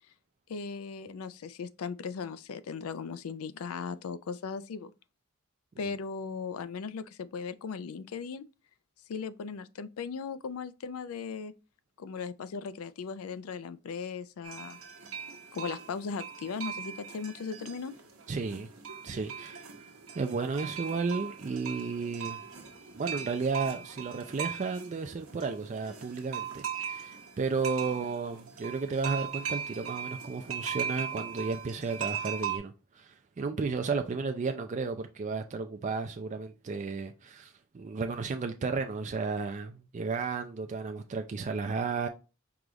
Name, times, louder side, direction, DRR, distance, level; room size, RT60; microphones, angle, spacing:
voice 1, 0.5-4.9 5.8-8.5 9.1-11.5 12.0-14.8 15.5-17.9, left 5 dB, 85° left, 0.4 m, -38 dB
sound 1, 14.4-32.6, right 7 dB, 80° right, 1.0 m, -39 dB
voice 2, 18.3-18.7 19.0-19.7 20.1-22.4 22.9-42.1, right 4 dB, 35° right, 0.4 m, -33 dB
4.8 x 2.4 x 3.8 m
head